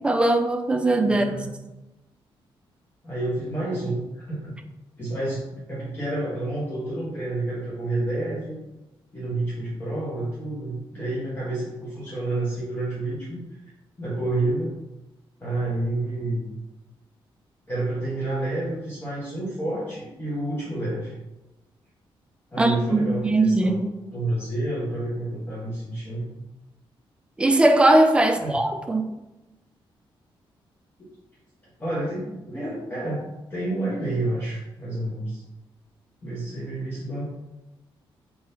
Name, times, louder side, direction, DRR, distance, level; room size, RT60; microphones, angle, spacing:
voice 1, 0.0-1.5 22.6-23.8 27.4-29.1, right 2 dB, 10° right, 6 dB, 0.4 m, -20 dB
voice 2, 1.1-1.5 3.0-4.5 5.0-8.5 9.1-13.6 14.0-14.7 15.4-16.5 17.7-21.1 22.5-23.8 24.1-26.2 28.4-28.6 31.8-33.2 33.5-35.4 36.2-37.3, right 2 dB, 20° left, -8 dB, 1.1 m, -29 dB
4.6 x 3.8 x 2.7 m, 1.0 s
wide cardioid pair, 150°, 9 cm